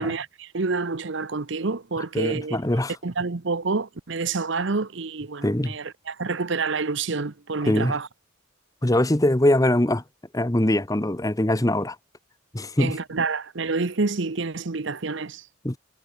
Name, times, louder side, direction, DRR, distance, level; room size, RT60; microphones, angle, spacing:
voice 1, 0.0-8.1 12.8-15.5, right 4 dB, 60° right, 0.9 m, -28 dB
voice 2, 2.1-2.9 5.4-5.7 7.7-7.9 8.8-10.0 10.3-12.0 12.5-12.9 15.6-15.8, left 1 dB, 15° left, 0.9 m, -22 dB
head